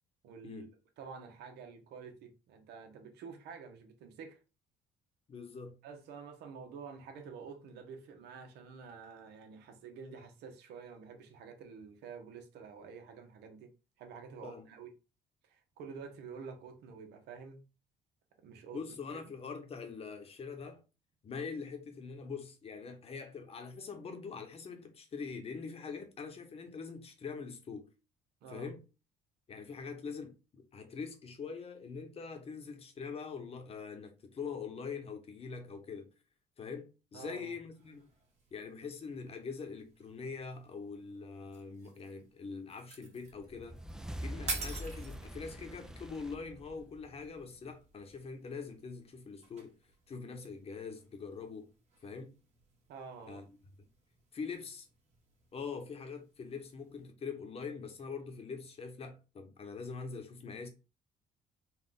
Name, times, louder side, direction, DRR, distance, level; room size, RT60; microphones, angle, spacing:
voice 1, 0.2-0.7 1.0-4.4 5.8-13.7 14.0-14.9 15.4-17.6 18.4-18.8 28.4-28.7 37.1-37.5 52.9-53.4, right 5 dB, 80° right, 1.1 m, -49 dB
voice 2, 5.3-5.8 14.4-14.7 18.7-20.8 21.2-27.9 28.5-28.8 29.5-36.1 36.6-38.1 38.5-43.8 44.2-49.7 50.1-51.7 52.0-52.3 53.3-53.6 54.3-54.9 55.5-60.7, left 5 dB, 35° left, 1.0 m, -43 dB
sound 1, 37.7-57.1, right 4 dB, 40° right, 1.5 m, -51 dB
sound 2, 43.3-47.9, equal, 5° right, 0.4 m, -45 dB
4.3 x 2.5 x 3.8 m
cardioid pair, 110°, 17 cm